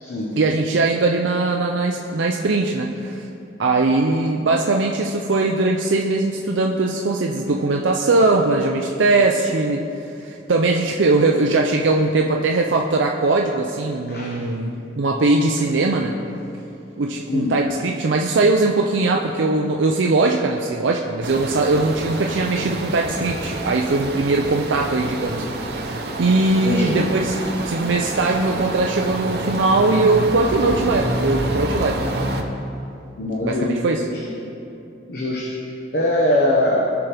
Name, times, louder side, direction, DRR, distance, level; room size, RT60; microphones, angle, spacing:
voice 1, 0.4-3.3 3.6-16.2 17.0-32.0 33.4-34.0, right 3 dB, 90° right, 1 dB, 0.6 m, -20 dB
voice 2, 14.1-14.4 17.3-17.6 26.6-26.9 33.2-34.3 35.1-35.5 35.9-36.8, left 1 dB, 55° left, -3 dB, 1.0 m, -22 dB
sound 1, 21.2-32.4, right 2 dB, 60° right, 0.8 m, -28 dB
17.0 x 5.9 x 3.4 m, 2.7 s
head